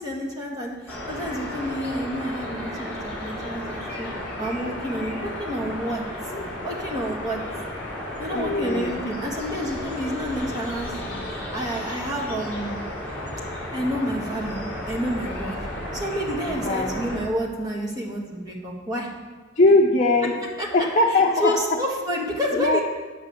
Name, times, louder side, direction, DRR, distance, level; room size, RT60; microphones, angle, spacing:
voice 1, 0.0-4.1 4.4-6.0 6.6-7.4 8.2-12.7 13.7-14.6 14.9-15.5 15.9-19.1 20.6-20.9 21.4-22.8, equal, 20° right, -2 dB, 1.8 m, -29 dB
sound 1, 0.9-17.2, left 1 dB, 10° left, 4.1 m, -33 dB
voice 2, 8.3-9.0 16.4-17.0 19.6-20.4 20.7-21.8 22.5-22.8, left 2 dB, 40° left, 0 dB, 0.7 m, -21 dB
10.0 x 5.5 x 8.0 m, 1.3 s
head